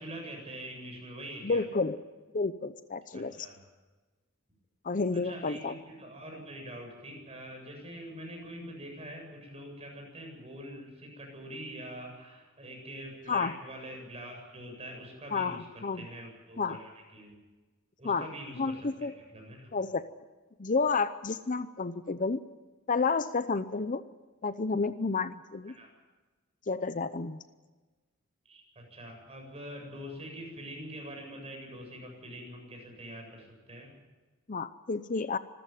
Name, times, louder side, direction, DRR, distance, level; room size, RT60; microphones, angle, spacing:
voice 1, 0.0-1.6 3.1-3.6 5.1-17.4 18.0-19.7 25.7-25.9 28.4-33.9, equal, 30° right, 1 dB, 7.9 m, -44 dB
voice 2, 1.4-2.0 2.3-3.5 4.8-5.7 13.3-13.5 15.3-16.1 16.6-16.8 18.0-18.3 18.6-19.1 19.7-20.0 20.6-22.4 22.9-24.0 24.4-25.7 26.7-27.4 34.5-35.4, left 4 dB, 40° left, 12 dB, 0.7 m, -30 dB
26.0 x 14.0 x 9.2 m, 1.3 s
head